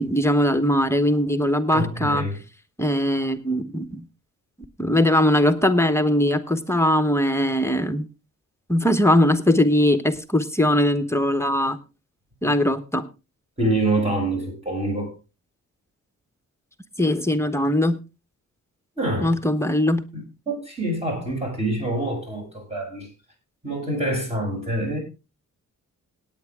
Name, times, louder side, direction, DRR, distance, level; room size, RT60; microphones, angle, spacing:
voice 1, 0.0-2.2 2.8-4.0 4.8-8.1 8.7-11.8 12.4-13.0 17.0-18.0 19.2-20.0, left 1 dB, 10° left, 1.2 m, -20 dB
voice 2, 1.7-2.4 13.6-15.1 19.0-19.5 20.1-23.1 23.6-25.0, right 1 dB, 20° right, 7.9 m, -26 dB
17.5 x 9.4 x 3.6 m
cardioid pair, 105°, 31 cm